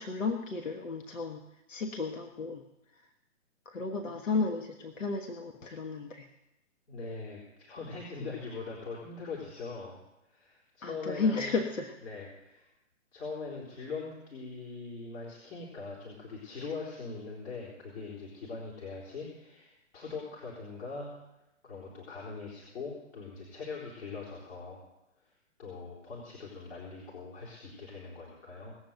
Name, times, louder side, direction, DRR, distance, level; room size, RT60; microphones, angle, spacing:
voice 1, 0.0-3.1 3.6-6.3 10.8-12.0, left 4 dB, 80° left, 4 dB, 1.4 m, -34 dB
voice 2, 6.9-10.0 10.3-11.5 12.0-12.7 13.1-21.2 21.6-24.8 25.2-28.8, left 4 dB, 60° left, -4 dB, 4.2 m, -42 dB
19.0 x 7.6 x 8.0 m, 0.90 s
hypercardioid pair, 130°, 38 cm